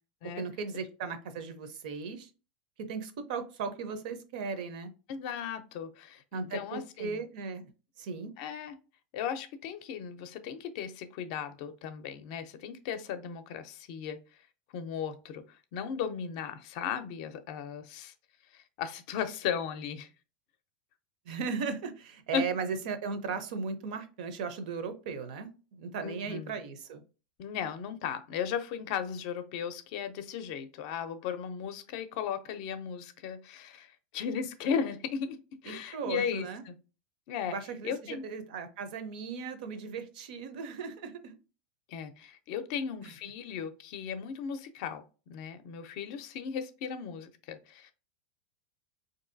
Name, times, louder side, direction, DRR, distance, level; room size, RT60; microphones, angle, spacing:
voice 1, 0.4-2.3 2.8-4.9 6.3-7.7 8.0-8.3 21.3-27.0 35.7-36.6 37.5-41.4 43.0-43.1, right 5 dB, 70° right, 10 dB, 0.6 m, -37 dB
voice 2, 5.1-7.2 8.4-8.7 9.1-14.2 14.7-18.1 18.5-20.1 22.3-22.5 26.0-26.5 27.4-35.4 35.6-36.8 37.3-37.5 37.8-38.2 41.9-45.0 45.3-47.9, left 7 dB, 50° left, 10 dB, 0.5 m, -36 dB
3.8 x 2.6 x 2.6 m, 0.33 s
supercardioid pair, 155°, 5 cm